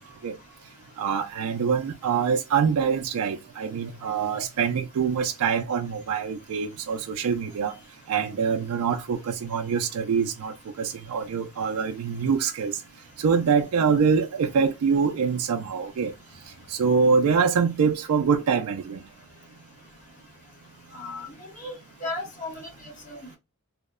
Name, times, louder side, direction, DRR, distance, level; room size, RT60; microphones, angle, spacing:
voice 1, 1.0-7.8 8.1-12.8 13.2-16.1 16.7-19.0, right 6 dB, 70° right, 0.3 m, -24 dB
voice 2, 20.9-21.7 22.0-23.4, left 2 dB, 35° left, 0.8 m, -36 dB
2.8 x 2.0 x 2.3 m
head